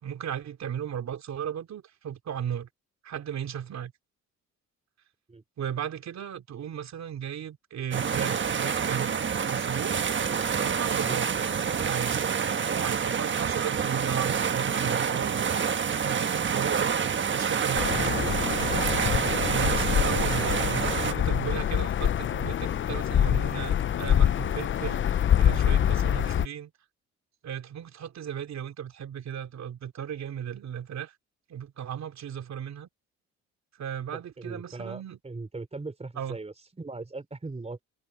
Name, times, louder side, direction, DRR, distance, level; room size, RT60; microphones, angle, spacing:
voice 1, 0.0-2.7 3.0-3.9 5.6-9.2 9.5-10.0 10.6-12.2 12.8-15.4 15.9-16.9 17.3-18.2 19.5-26.7 27.4-31.1 31.5-32.9 33.8-35.2 36.2-36.4, right 9 dB, 65° right, 2.9 m, -35 dB
sound 1, 7.9-21.1, right 7 dB, 40° right, 1.3 m, -27 dB
sound 2, 17.7-26.5, left 10 dB, 40° left, 0.5 m, -25 dB
voice 2, 34.1-37.8, right 3 dB, 20° right, 3.7 m, -39 dB
cardioid pair, 90°, 30 cm